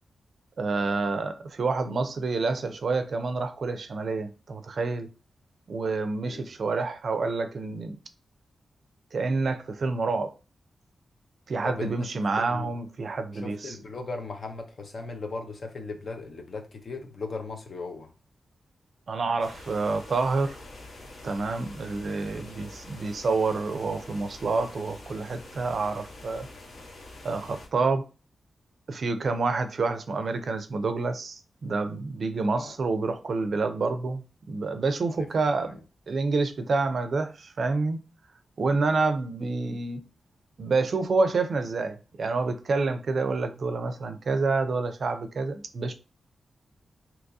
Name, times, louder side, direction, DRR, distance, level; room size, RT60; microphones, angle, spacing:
voice 1, 0.6-5.1 5.7-8.0 9.1-10.3 11.5-13.7 19.1-20.6 21.2-26.5 27.2-28.0 28.9-34.2 34.5-35.8 36.1-38.0 38.6-40.0 40.6-45.9, right 3 dB, 50° right, 0.4 m, -28 dB
voice 2, 11.6-12.7 13.3-18.1 32.5-32.7 35.1-35.3 35.7-35.8, left 3 dB, 45° left, 0.6 m, -38 dB
sound 1, 19.4-27.7, left 2 dB, 65° left, 1.1 m, -46 dB
2.8 x 2.7 x 3.5 m
wide cardioid pair, 150°, 0 cm